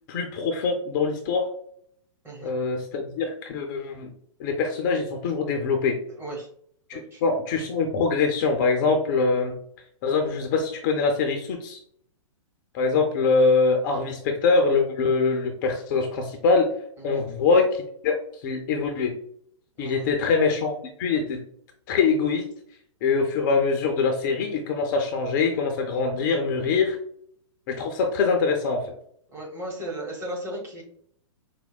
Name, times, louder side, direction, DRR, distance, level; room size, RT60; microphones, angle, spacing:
voice 1, 0.1-1.5 2.4-4.1 4.4-6.0 6.9-9.6 10.0-11.8 12.7-16.7 17.0-19.1 19.8-21.4 21.9-22.4 23.0-27.0 27.7-28.9, left 4 dB, 35° left, 3 dB, 0.5 m, -23 dB
voice 2, 6.2-6.5 6.9-7.2 17.0-17.2 19.8-20.1 29.3-30.8, right 1 dB, 10° right, -2 dB, 1.0 m, -36 dB
4.4 x 2.0 x 2.2 m, 0.64 s
figure-of-eight pair, 115°, 17 cm